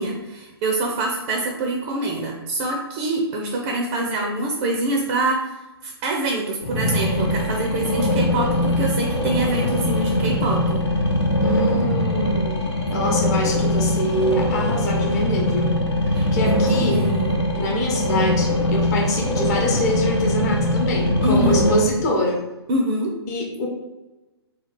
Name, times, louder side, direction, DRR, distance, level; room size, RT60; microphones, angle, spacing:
voice 1, 0.0-5.5 5.8-10.8 16.1-17.4 21.2-21.6 22.7-23.2, right 2 dB, 30° right, 0 dB, 0.5 m, -25 dB
sound 1, 6.6-21.8, left 1 dB, 85° left, 0.8 m, -22 dB
voice 2, 11.4-15.8 16.3-17.1 17.5-22.4 23.3-23.7, left 1 dB, 35° left, -1 dB, 0.8 m, -25 dB
2.9 x 2.3 x 4.2 m, 1.1 s
figure-of-eight pair, 125°, 14 cm